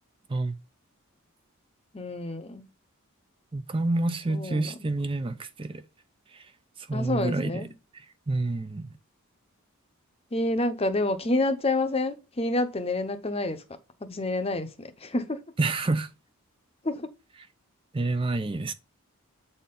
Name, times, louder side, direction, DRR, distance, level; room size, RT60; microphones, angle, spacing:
voice 1, 1.9-2.7 4.3-4.7 6.9-7.7 10.3-13.6 14.0-15.4 16.8-17.1, left 2 dB, 25° left, 0.8 m, -28 dB
voice 2, 3.5-5.8 6.3-6.5 6.8-7.5 7.9-8.9 15.6-16.1 17.9-18.7, right 2 dB, 25° right, 0.5 m, -28 dB
8.2 x 4.3 x 3.8 m
head